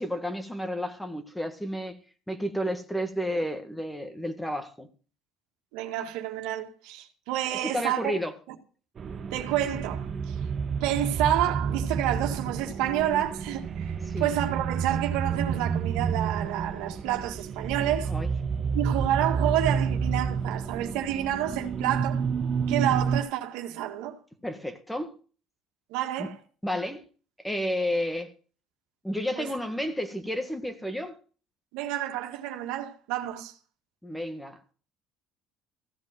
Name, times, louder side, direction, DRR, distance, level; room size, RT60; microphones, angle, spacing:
voice 1, 0.0-2.0 2.3-4.9 7.6-8.3 14.1-14.3 18.1-18.3 24.4-25.1 26.2-26.3 26.6-27.0 27.4-28.3 29.0-31.2 34.0-34.7, equal, 5° left, 1.7 m, -31 dB
voice 2, 5.7-8.1 8.5-8.6 9.3-10.4 10.8-18.1 18.7-22.2 22.7-24.2 25.9-26.4 29.4-29.5 31.7-33.5, right 12 dB, 80° right, 1.9 m, -29 dB
sound 1, 9.0-23.2, right 6 dB, 40° right, 0.9 m, -30 dB
15.5 x 5.3 x 9.3 m
supercardioid pair, 100°, 0 cm